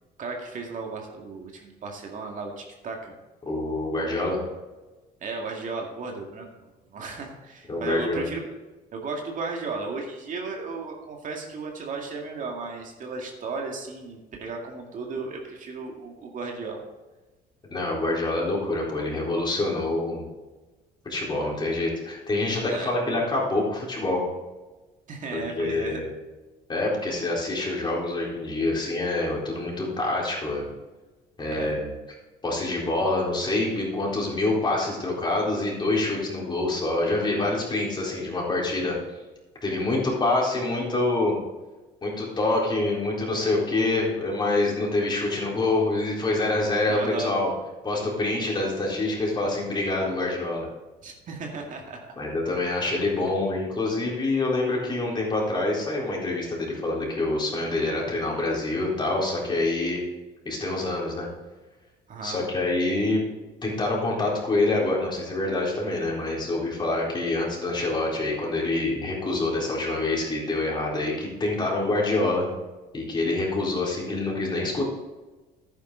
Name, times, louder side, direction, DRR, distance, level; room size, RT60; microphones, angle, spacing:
voice 1, 0.2-3.2 5.2-8.5 8.9-16.8 22.7-22.9 25.1-26.0 31.5-31.7 46.9-47.3 51.0-52.1 62.1-62.4, right 4 dB, 50° right, 1 dB, 2.2 m, -35 dB
voice 2, 3.4-4.4 7.7-8.3 17.7-20.2 21.0-24.2 25.3-26.1 26.7-30.7 31.4-31.9 32.4-39.0 39.6-41.4 42.0-47.5 47.8-50.7 52.2-60.0 60.5-61.3 62.2-63.2 63.6-72.5 72.9-74.8, left 2 dB, 25° left, -3 dB, 4.1 m, -26 dB
11.5 x 9.5 x 3.9 m, 1.2 s
cardioid pair, 110°, 17 cm